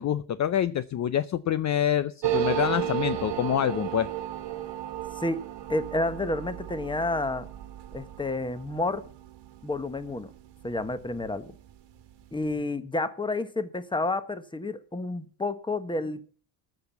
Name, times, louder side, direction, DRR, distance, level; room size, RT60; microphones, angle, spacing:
voice 1, 0.0-4.1, left 10 dB, 40° left, 14 dB, 0.5 m, -26 dB
sound 1, 2.2-11.4 11.7-11.8 12.0-12.5, right 12 dB, 80° right, 1.8 m, -34 dB
voice 2, 5.7-7.5 7.9-9.1 9.6-10.3 10.6-11.5 12.3-16.3, left 2 dB, 10° left, 12 dB, 1.1 m, -30 dB
14.5 x 6.0 x 7.1 m, 0.42 s
cardioid pair, 110°, 43 cm